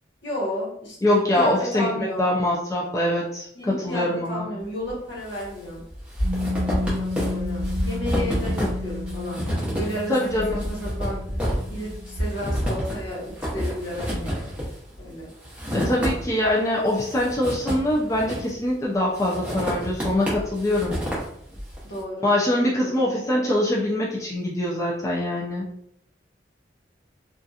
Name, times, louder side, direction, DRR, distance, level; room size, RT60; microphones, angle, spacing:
voice 1, 0.2-2.3 3.5-5.8 6.8-11.2 11.7-14.5 15.0-15.3 21.8-22.3 22.8-23.0, equal, 70° left, -4 dB, 1.0 m, -32 dB
voice 2, 1.0-4.5 10.1-10.7 15.7-21.0 22.2-25.7, left 1 dB, 15° left, -4 dB, 0.4 m, -23 dB
sound 1, 4.9-5.5 5.7-16.5 16.9-18.7 19.1-21.8, equal, 5° right, 0.8 m, -29 dB
Piano, 6.2-13.5, left 2 dB, 75° right, 0.5 m, -33 dB
2.7 x 2.4 x 2.3 m, 0.71 s
head